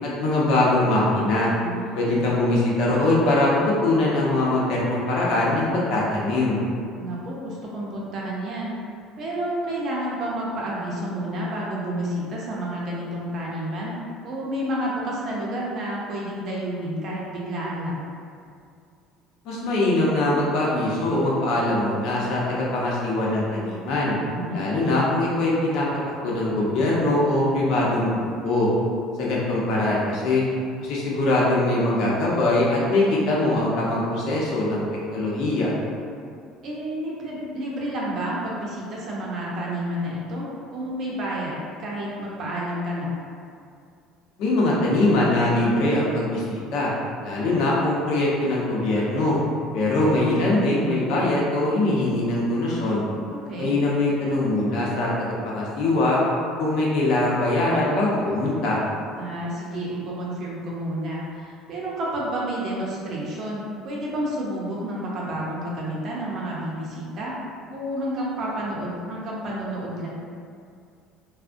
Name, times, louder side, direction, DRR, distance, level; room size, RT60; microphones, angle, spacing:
voice 1, 0.0-1.5 2.0-6.6 19.4-24.1 24.5-25.9 26.2-28.7 29.2-30.4 30.8-34.8 35.1-35.7 44.4-46.9 47.2-49.4 49.7-53.1 53.6-56.2 56.6-58.8, left 2 dB, 65° left, -5 dB, 0.7 m, -22 dB
voice 2, 1.6-2.2 7.0-8.7 9.2-13.9 14.2-18.1 24.3-24.6 36.6-40.5 40.7-43.1 50.1-50.7 53.3-53.7 59.2-67.3 67.7-70.1, right 1 dB, 45° right, -5 dB, 0.6 m, -30 dB
3.3 x 2.1 x 2.5 m, 2.3 s
cardioid pair, 140°, 0 cm